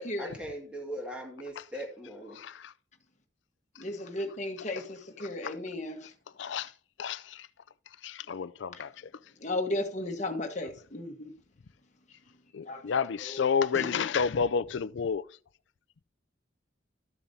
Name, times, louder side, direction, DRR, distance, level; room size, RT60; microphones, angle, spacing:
voice 1, 0.0-2.4, right 1 dB, 5° right, 2.0 m, -40 dB
voice 2, 2.3-2.7 5.2-5.5 6.4-6.7 7.0-7.5 8.0-9.1 12.5-15.2, left 6 dB, 70° left, 0.4 m, -30 dB
voice 3, 3.8-6.1 9.4-11.3 12.6-12.9 13.3-13.4 13.7-13.9, left 2 dB, 40° left, 1.4 m, -35 dB
13.5 x 7.0 x 2.7 m
head